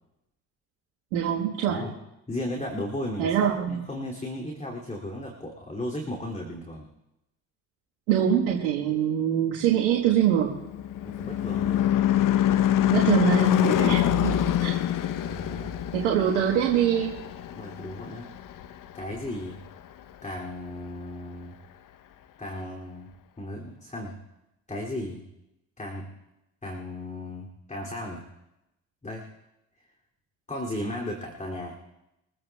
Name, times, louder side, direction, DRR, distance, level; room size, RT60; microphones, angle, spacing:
voice 1, 1.1-1.8 3.2-3.8 8.1-10.5 12.9-14.7 15.9-17.2, right 9 dB, 75° right, -3 dB, 1.5 m, -24 dB
voice 2, 2.3-6.9 11.0-11.9 15.2-15.7 17.6-18.3 18.9-19.6 20.2-21.5 22.4-23.1 23.4-24.2 24.7-25.2 25.8-26.1 26.6-28.3 29.0-29.3 30.5-31.8, left 1 dB, 15° left, -1 dB, 2.7 m, -35 dB
Car passing by / Truck / Engine, 10.2-18.9, left 12 dB, 50° left, 0.8 m, -25 dB
24.0 x 15.0 x 2.3 m, 0.92 s
hypercardioid pair, 55°, 43 cm